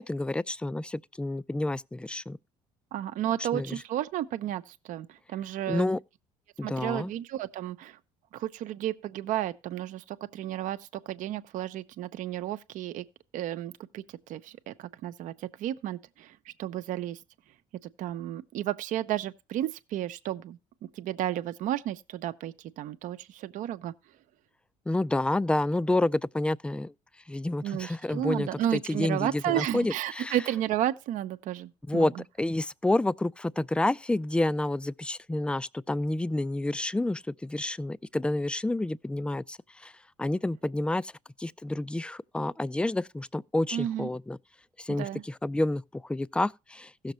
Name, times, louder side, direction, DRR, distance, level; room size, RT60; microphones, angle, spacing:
voice 1, 0.0-2.4 3.5-3.8 5.7-6.0 6.6-7.1 24.9-26.9 27.3-30.4 31.9-39.9 40.2-41.1 41.4-44.4 44.8-47.1, left 2 dB, 5° left, 0.4 m, -29 dB
voice 2, 2.9-5.9 6.6-8.0 8.3-13.0 13.3-17.2 17.8-20.6 20.9-23.9 27.6-32.1 43.7-44.1 45.0-45.2, right 12 dB, 65° right, 0.8 m, -32 dB
16.0 x 6.6 x 3.1 m
supercardioid pair, 75°, 14 cm